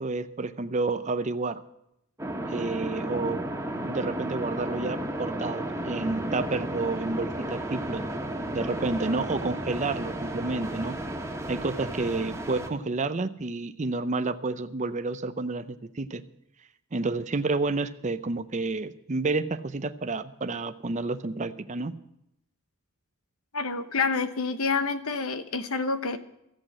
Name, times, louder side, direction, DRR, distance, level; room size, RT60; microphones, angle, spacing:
voice 1, 0.0-1.6 2.4-3.4 3.8-8.0 8.5-11.0 11.5-16.2 16.9-22.0, right 3 dB, 35° right, 11 dB, 0.6 m, -30 dB
sound 1, 2.2-12.7, right 1 dB, 15° right, 1.5 m, -33 dB
voice 2, 23.5-26.2, left 4 dB, 85° left, 11 dB, 1.1 m, -28 dB
14.0 x 8.0 x 8.6 m, 0.83 s
head